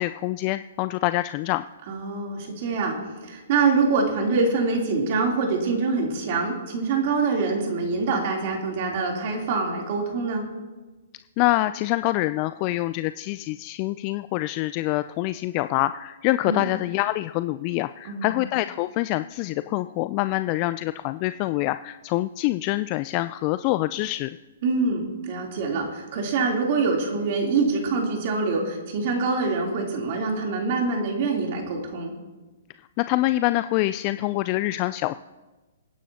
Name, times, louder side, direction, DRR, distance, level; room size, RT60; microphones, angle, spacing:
voice 1, 0.0-1.6 11.4-24.3 33.0-35.1, left 17 dB, 35° left, 13 dB, 0.3 m, -25 dB
voice 2, 1.9-10.4 16.5-16.7 18.0-18.4 24.6-32.1, right 4 dB, 50° right, 0 dB, 3.3 m, -25 dB
23.5 x 10.0 x 2.9 m, 1.2 s
hypercardioid pair, 130°, 0 cm